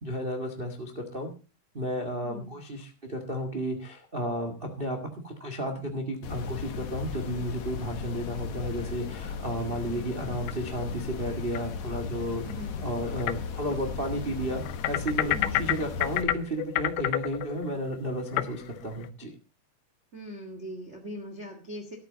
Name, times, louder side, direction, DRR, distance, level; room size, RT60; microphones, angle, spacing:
voice 1, 0.0-1.3 1.7-5.0 5.2-12.5 12.8-19.3, equal, 90° right, 4 dB, 0.5 m, -33 dB
voice 2, 2.2-2.6 12.4-12.9 15.3-15.6 20.1-22.0, equal, 35° right, 4 dB, 1.0 m, -41 dB
sound 1, 6.2-16.2, left 6 dB, 55° left, 2.3 m, -36 dB
sound 2, 10.2-10.9 11.6-11.7 12.5-12.6 13.2-13.4 13.7-13.8 14.6-19.1, left 14 dB, 80° left, 2.6 m, -30 dB
13.0 x 13.0 x 4.0 m, 0.33 s
omnidirectional pair, 4.6 m